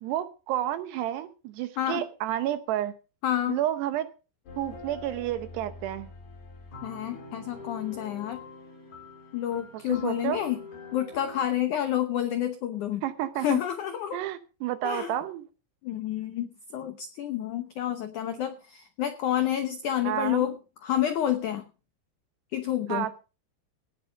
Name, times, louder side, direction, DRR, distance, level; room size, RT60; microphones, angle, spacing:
voice 1, 0.0-2.9 3.5-4.1 4.6-6.1 9.9-10.4 13.0-13.6 14.1-15.4 20.0-20.5 22.9-23.2, right 12 dB, 75° right, 11 dB, 2.9 m, -30 dB
voice 2, 3.2-3.6 6.8-8.4 9.3-10.6 10.9-13.0 13.4-14.2 14.8-15.1 15.8-21.7 22.5-23.1, left 11 dB, 80° left, 9 dB, 1.7 m, -29 dB
sound 1, 4.5-11.4, left 3 dB, 65° left, 7.0 m, -45 dB
18.0 x 9.0 x 5.2 m, 0.34 s
omnidirectional pair, 5.1 m